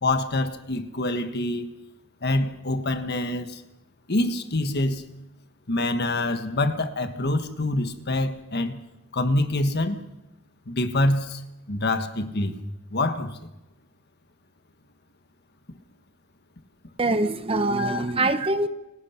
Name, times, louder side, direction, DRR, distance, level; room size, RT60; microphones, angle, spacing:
voice 1, 0.0-1.7 2.2-3.6 4.1-5.0 5.7-8.8 9.1-10.0 10.7-11.4 11.7-12.5 12.9-13.5 17.8-18.0, left 2 dB, 50° left, 1.5 m, -26 dB
voice 2, 17.0-18.7, right 2 dB, 25° right, 0.9 m, -23 dB
29.0 x 17.5 x 5.9 m
head